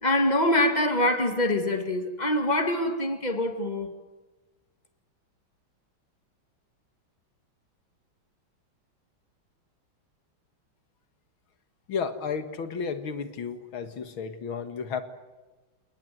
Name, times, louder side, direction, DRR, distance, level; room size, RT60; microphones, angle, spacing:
voice 1, 0.0-3.9, left 1 dB, 20° left, 2.4 m, -24 dB
voice 2, 11.9-15.0, left 6 dB, 80° left, 2.6 m, -32 dB
29.5 x 19.0 x 9.4 m
omnidirectional pair, 2.2 m